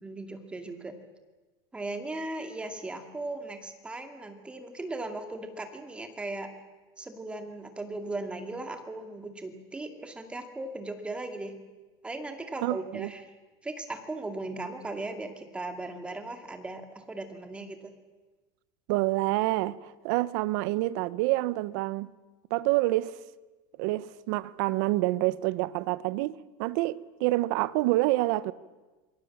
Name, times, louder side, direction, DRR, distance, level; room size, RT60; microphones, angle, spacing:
voice 1, 0.0-0.9 1.7-6.5 7.0-11.5 12.0-13.2 13.6-17.9, right 2 dB, 10° right, 2.3 m, -37 dB
voice 2, 12.6-13.1 18.9-22.1 22.5-23.2 23.8-28.5, right 18 dB, 65° right, 0.9 m, -27 dB
27.5 x 22.0 x 7.3 m
supercardioid pair, 160°, 12 cm